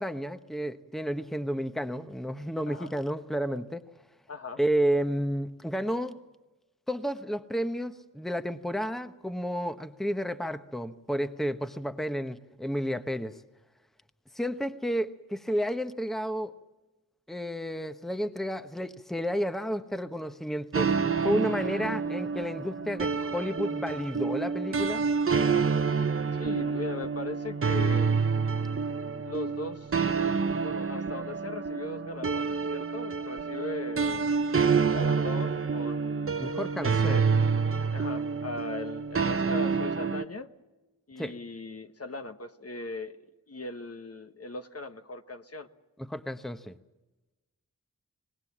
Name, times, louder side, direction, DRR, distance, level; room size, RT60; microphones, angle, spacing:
voice 1, 0.0-3.8 4.6-6.2 6.9-13.4 14.3-16.5 17.3-20.9 21.2-25.0 36.4-37.2 41.2-41.4 46.0-46.7, equal, ahead, 9 dB, 1.1 m, -31 dB
voice 2, 4.3-4.6 26.4-28.1 29.2-30.0 30.6-34.3 34.9-36.6 36.8-37.3 37.9-40.5 41.1-45.7, left 3 dB, 50° left, 7 dB, 1.3 m, -39 dB
sound 1, 20.7-40.3, right 5 dB, 40° right, 0.9 m, -28 dB
25.5 x 19.5 x 7.4 m, 1.1 s
cardioid pair, 45°, 32 cm